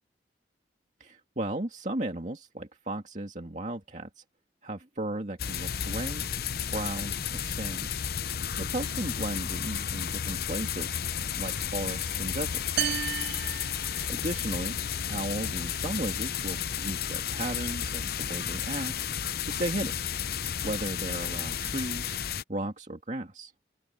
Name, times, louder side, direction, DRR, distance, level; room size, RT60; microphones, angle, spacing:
voice 1, 1.0-4.2 4.6-6.3 6.7-7.9 8.3-11.0 11.4-12.8 13.7-14.8 15.1-20.0 20.6-22.2 22.5-23.5, right 1 dB, 40° right, 2.2 m, -35 dB
sound 1, 5.4-22.4, left 8 dB, 55° left, 0.6 m, -32 dB
sound 2, 12.8-14.5, right 10 dB, 65° right, 0.6 m, -33 dB
open air
head